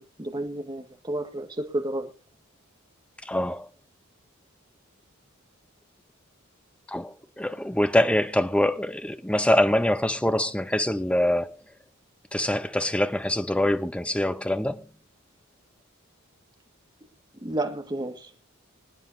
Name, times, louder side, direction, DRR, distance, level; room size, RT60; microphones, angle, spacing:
voice 1, 0.0-2.1 17.4-18.3, right 1 dB, 20° right, 1.9 m, -31 dB
voice 2, 3.2-3.7 6.9-11.6 12.3-14.9, left 1 dB, 5° left, 0.8 m, -24 dB
25.0 x 9.7 x 2.8 m
head